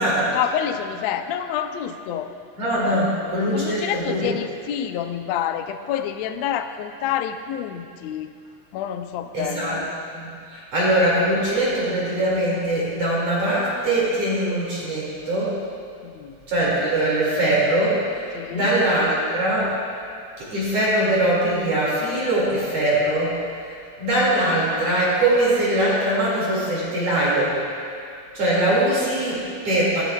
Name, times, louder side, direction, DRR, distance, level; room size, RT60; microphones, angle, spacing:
voice 1, 0.3-2.3 2.8-3.0 3.5-8.3 8.7-9.9 16.0-16.4 18.3-18.7, left 9 dB, 90° left, 7 dB, 1.5 m, -28 dB
voice 2, 2.6-4.3 9.3-9.8 10.1-15.6 16.5-19.7 20.4-23.4 24.0-27.6 28.3-30.0, right 1 dB, 50° right, -7 dB, 3.2 m, -22 dB
18.0 x 13.5 x 2.3 m, 2.4 s
omnidirectional pair, 3.8 m